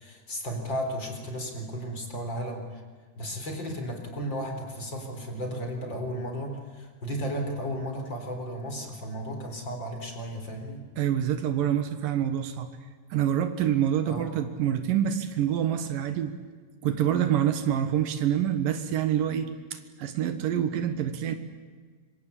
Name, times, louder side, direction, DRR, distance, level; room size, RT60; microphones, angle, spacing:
voice 1, 0.0-2.8 3.2-10.8 14.0-14.3, equal, 35° left, 4 dB, 4.6 m, -34 dB
voice 2, 11.0-12.7 13.1-16.3 16.8-21.3, right 10 dB, 85° right, 9 dB, 3.1 m, -26 dB
25.5 x 24.5 x 8.5 m, 1.5 s
omnidirectional pair, 3.8 m